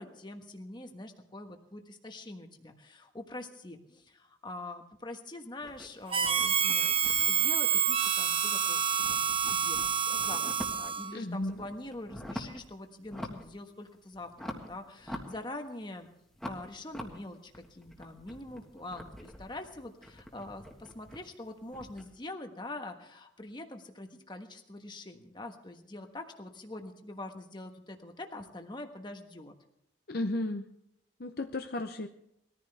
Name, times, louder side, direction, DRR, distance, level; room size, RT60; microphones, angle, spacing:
voice 1, 0.0-16.1 16.4-29.5, left 2 dB, 25° left, 5 dB, 1.3 m, -44 dB
sound 1, 5.6-8.5 8.8-11.0 11.4-12.7 13.0-13.6 13.9-15.9 16.3-22.1, equal, 5° left, 1.6 m, -45 dB
Harmonica, 6.1-11.2, right 7 dB, 30° right, 0.7 m, -28 dB
voice 2, 11.1-11.6 30.1-30.7 31.2-32.1, left 2 dB, 50° left, 6 dB, 0.7 m, -34 dB
21.0 x 14.5 x 3.4 m, 0.77 s
head